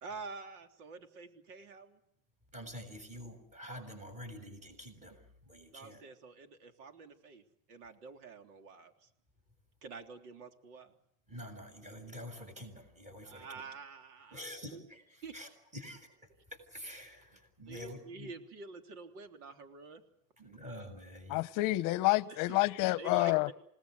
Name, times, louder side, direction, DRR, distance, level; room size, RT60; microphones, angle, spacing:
voice 1, 0.0-2.0 5.7-7.4 7.7-9.1 9.8-10.9 13.3-14.8 15.2-15.4 17.7-20.0 22.3-22.6 23.0-23.5, right 4 dB, 90° right, 3.5 m, -48 dB
voice 2, 2.5-6.0 11.3-13.5 14.3-16.1 16.5-18.3 20.4-21.5, equal, 15° right, 7.0 m, -47 dB
voice 3, 21.3-23.5, left 20 dB, 45° left, 1.0 m, -28 dB
28.5 x 19.0 x 8.1 m
supercardioid pair, 155°, 44 cm